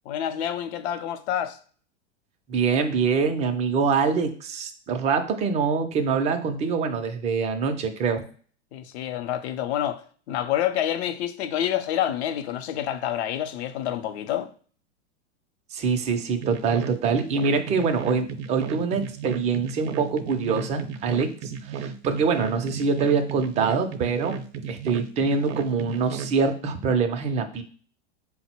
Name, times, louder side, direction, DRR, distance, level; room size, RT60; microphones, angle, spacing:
voice 1, 0.1-1.6 8.7-14.5, left 11 dB, 65° left, 0.6 m, -28 dB
voice 2, 2.5-8.2 15.7-24.4 24.7-27.6, right 5 dB, 20° right, 0.4 m, -24 dB
sound 1, 16.4-26.3, right 6 dB, 60° right, 0.6 m, -34 dB
3.7 x 2.1 x 4.3 m
hypercardioid pair, 120°, 36 cm